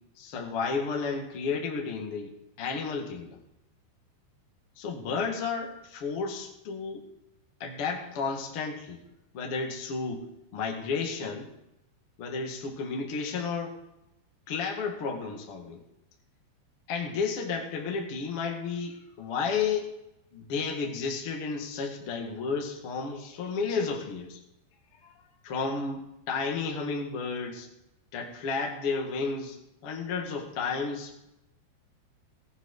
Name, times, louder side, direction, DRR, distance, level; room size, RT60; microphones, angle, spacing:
voice 1, 0.2-3.4 4.8-7.0 7.6-9.0 9.3-10.2 10.5-11.5 12.2-13.8 14.5-15.8 16.9-20.0 20.3-24.4 25.0-25.1 25.4-27.7 28.1-31.2, left 5 dB, 45° left, 1 dB, 1.9 m, -32 dB
18.0 x 9.4 x 4.0 m, 0.87 s
omnidirectional pair, 5.3 m